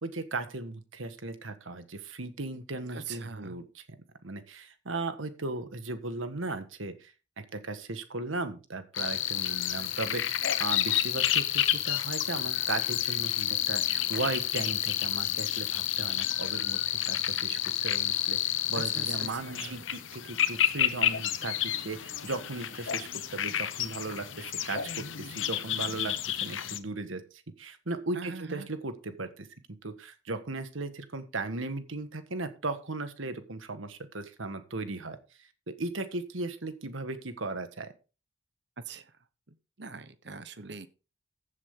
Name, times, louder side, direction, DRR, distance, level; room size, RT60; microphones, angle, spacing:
voice 1, 0.0-3.8 4.2-26.1 26.4-29.5 29.8-37.9, right 3 dB, 85° right, 9 dB, 1.6 m, -37 dB
voice 2, 2.9-3.6 18.7-19.8 28.1-28.7 38.8-39.1 39.5-40.9, right 4 dB, 60° right, 12 dB, 1.1 m, -42 dB
sound 1, 8.9-26.8, left 12 dB, 75° left, 0.9 m, -30 dB
15.0 x 7.5 x 3.8 m, 0.32 s
head